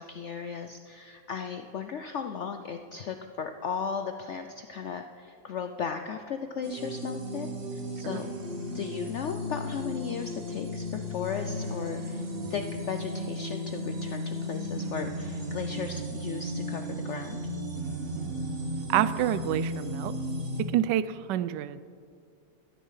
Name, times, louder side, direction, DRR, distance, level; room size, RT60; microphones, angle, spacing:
voice 1, 0.0-8.3 8.7-17.4, left 6 dB, 85° left, 6 dB, 0.6 m, -36 dB
sound 1, 6.6-20.6, equal, 35° right, 1.5 m, -35 dB
voice 2, 18.9-20.1 20.6-21.8, right 12 dB, 80° right, 15 dB, 1.2 m, -28 dB
12.5 x 11.5 x 5.7 m, 2.2 s
omnidirectional pair, 1.9 m